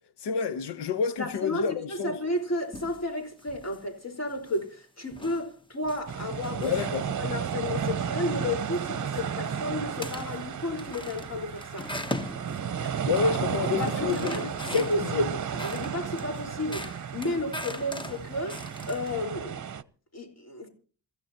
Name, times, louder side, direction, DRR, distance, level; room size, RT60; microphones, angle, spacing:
voice 1, 0.2-2.2 6.6-7.0 12.8-15.3, left 5 dB, 90° left, 1.0 m, -29 dB
voice 2, 1.2-6.7 7.2-11.9 13.7-14.5 14.7-19.6 20.1-20.7, left 2 dB, 40° left, 4.5 m, -32 dB
sound 1, 2.3-3.1 3.4-3.8 4.3-4.7 5.1-7.3 7.6-8.0 8.4-8.8 9.1-9.5 9.9-10.4 10.8-13.3 13.6-15.2 15.6-19.2, left 1 dB, 10° left, 1.0 m, -40 dB
sound 2, 6.1-19.8, right 7 dB, 45° right, 0.8 m, -33 dB
27.0 x 15.0 x 2.9 m
wide cardioid pair, 105°, 40 cm